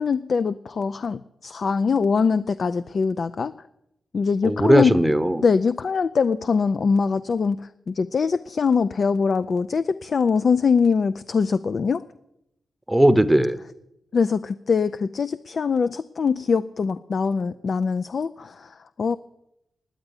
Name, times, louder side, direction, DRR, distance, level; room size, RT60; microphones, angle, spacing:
voice 1, 0.0-3.5 4.1-5.0 5.4-7.6 7.9-12.0 14.1-19.2, left 5 dB, 60° left, 13 dB, 0.4 m, -23 dB
voice 2, 4.4-5.4 12.9-13.6, right 1 dB, 15° right, 13 dB, 0.8 m, -18 dB
10.0 x 8.8 x 9.7 m, 0.83 s
supercardioid pair, 40°, 0 cm